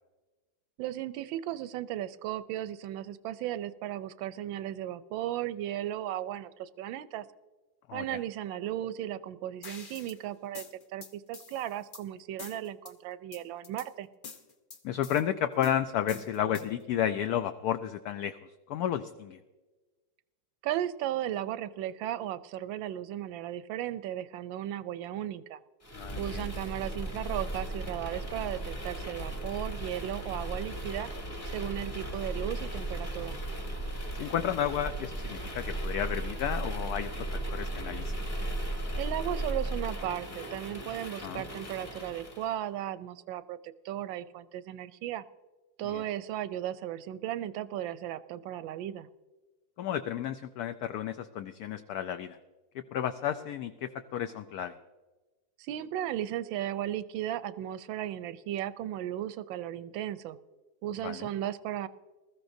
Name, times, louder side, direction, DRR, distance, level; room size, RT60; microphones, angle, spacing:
voice 1, 0.8-7.2 7.9-10.6 10.9-14.1 20.6-25.6 26.2-31.1 31.5-33.4 39.0-45.2 45.8-49.1 55.6-60.4 60.8-61.9, right 12 dB, 90° right, 14 dB, 1.3 m, -35 dB
voice 2, 7.9-8.2 14.8-19.4 25.9-26.5 34.1-38.1 41.2-41.5 45.8-46.0 49.8-52.4 52.7-54.7 61.0-61.3, left 10 dB, 75° left, 8 dB, 0.9 m, -32 dB
sound 1, 9.6-10.2 10.5-12.0 12.4-12.9 13.3-13.9 14.2-15.2 15.6-16.8, left 5 dB, 50° left, 0.6 m, -46 dB
sound 2, 25.8-42.5, right 1 dB, 25° left, 2.0 m, -36 dB
20.5 x 14.0 x 2.6 m, 1.2 s
omnidirectional pair, 2.0 m